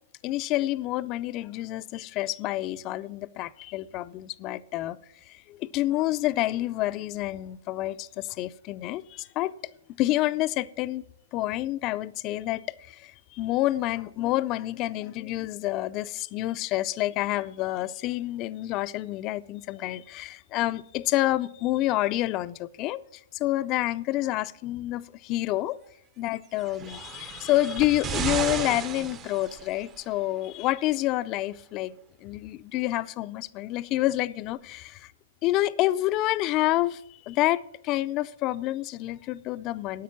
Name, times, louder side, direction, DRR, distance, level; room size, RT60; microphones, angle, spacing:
voice 1, 0.2-5.0 5.3-9.5 10.0-11.0 11.3-23.0 23.3-25.8 26.2-35.1 35.4-40.0, left 16 dB, 30° left, 0.4 m, -28 dB
sound 1, 26.6-30.0 30.9-31.0, right 7 dB, 20° right, 0.6 m, -34 dB
9.4 x 9.0 x 7.2 m
hypercardioid pair, 155°, 0 cm